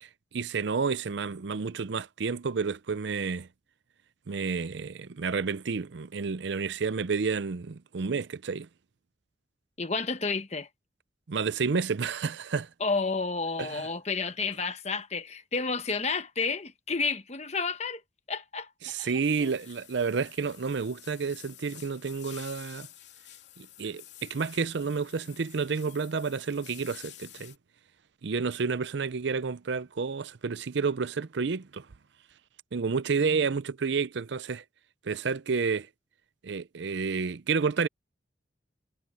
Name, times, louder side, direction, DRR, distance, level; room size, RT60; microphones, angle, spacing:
voice 1, 0.0-3.5 4.3-8.7 11.3-12.7 13.6-13.9 18.8-22.9 23.6-27.5 28.2-31.9 32.7-34.6 35.0-35.9 36.4-37.9, right 5 dB, 65° right, 0.5 m, -30 dB
voice 2, 9.8-10.7 12.8-18.0 18.3-18.7 19.0-19.5, left 4 dB, 35° left, 1.2 m, -31 dB
sound 1, 19.2-27.6, left 13 dB, 65° left, 3.4 m, -50 dB
head